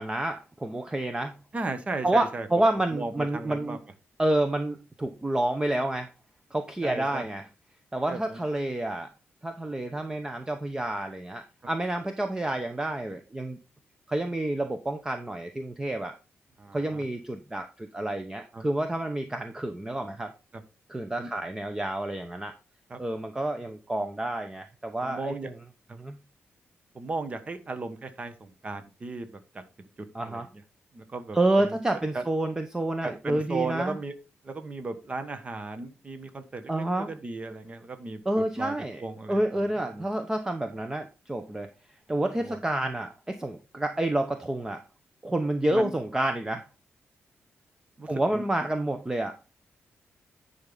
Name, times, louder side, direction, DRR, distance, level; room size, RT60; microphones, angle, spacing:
voice 1, 0.0-1.4 2.0-3.8 4.2-6.1 6.5-7.4 7.9-9.1 9.4-13.6 14.1-16.1 16.7-20.3 20.9-22.5 23.0-25.3 26.0-26.2 30.1-30.5 31.3-34.0 36.7-37.1 38.3-39.0 39.3-41.7 42.1-44.8 45.2-46.6 48.1-49.3, right 1 dB, 10° right, 6 dB, 0.8 m, -29 dB
voice 2, 1.5-2.5 2.9-3.8 6.8-7.2 8.1-8.4 16.6-17.0 18.5-18.6 21.2-21.3 22.9-23.0 25.0-25.5 25.9-26.0 26.9-29.6 30.0-30.5 30.9-31.8 32.1-32.2 33.0-34.1 34.4-38.7 39.0-40.0 42.4-42.6 45.7-45.9 48.0-48.4, right 3 dB, 30° right, 8 dB, 1.3 m, -36 dB
10.5 x 5.6 x 3.9 m, 0.30 s
wide cardioid pair, 155°, 5 cm